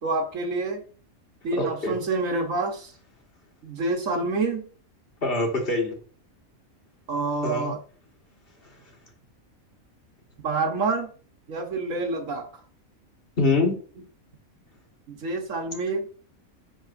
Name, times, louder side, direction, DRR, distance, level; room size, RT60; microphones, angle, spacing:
voice 1, 0.0-0.8 1.4-2.9 3.6-4.7 7.1-7.8 10.4-11.1 11.5-12.6 15.1-16.1, right 3 dB, 70° right, 4 dB, 1.5 m, -27 dB
voice 2, 1.5-1.9 5.2-6.0 7.4-7.7 13.4-13.7, left 2 dB, 45° left, 1 dB, 1.7 m, -24 dB
10.5 x 3.6 x 2.5 m, 0.40 s
omnidirectional pair, 1.4 m